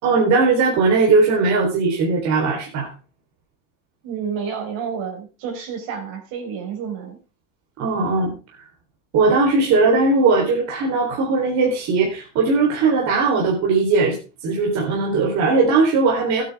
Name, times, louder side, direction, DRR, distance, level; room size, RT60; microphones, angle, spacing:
voice 1, 0.0-2.9 7.8-8.4 9.1-14.2 14.4-16.4, right 3 dB, 50° right, -2 dB, 3.7 m, -18 dB
voice 2, 4.0-7.2, right 6 dB, 65° right, 2 dB, 4.9 m, -30 dB
15.5 x 9.0 x 3.5 m, 0.32 s
supercardioid pair, 115°, 35 cm